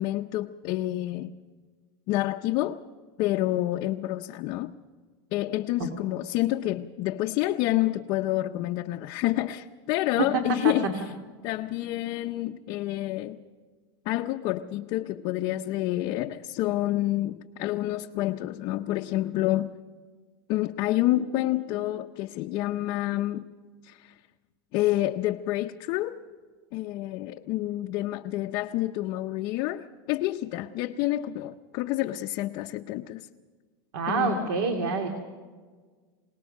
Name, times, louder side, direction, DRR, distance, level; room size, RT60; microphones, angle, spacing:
voice 1, 0.0-1.3 2.1-2.8 3.2-4.7 5.3-11.0 11.4-13.4 14.1-19.7 20.5-23.5 23.8-24.1 24.7-26.2 26.7-33.3 34.1-34.5, left 15 dB, 40° left, 0.6 m, -28 dB
voice 2, 33.9-35.1, right 4 dB, 80° right, 2.4 m, -26 dB
26.0 x 18.5 x 6.5 m
supercardioid pair, 170°, 12 cm